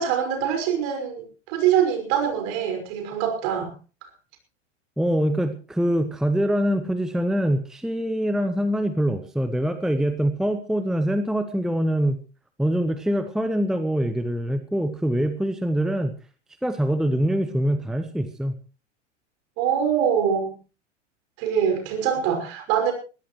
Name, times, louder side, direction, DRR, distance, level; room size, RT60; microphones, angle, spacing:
voice 1, 0.0-3.7 4.0-4.1 19.6-20.6 21.4-22.9, right 8 dB, 45° right, 5 dB, 5.7 m, -24 dB
voice 2, 5.0-12.2 12.6-16.1 16.6-18.5, right 1 dB, ahead, 10 dB, 0.8 m, -24 dB
21.5 x 16.5 x 3.1 m, 0.34 s
figure-of-eight pair, 90°, 37 cm